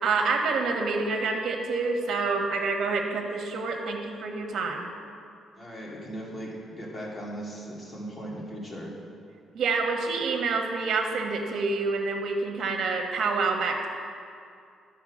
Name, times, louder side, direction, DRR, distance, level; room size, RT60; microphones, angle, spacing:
voice 1, 0.0-4.9 9.5-13.9, right 4 dB, 65° right, 2 dB, 1.3 m, -27 dB
voice 2, 5.5-8.9, right 1 dB, 25° left, -4 dB, 2.5 m, -38 dB
12.0 x 4.3 x 6.3 m, 2.4 s
cardioid pair, 90°, 0 cm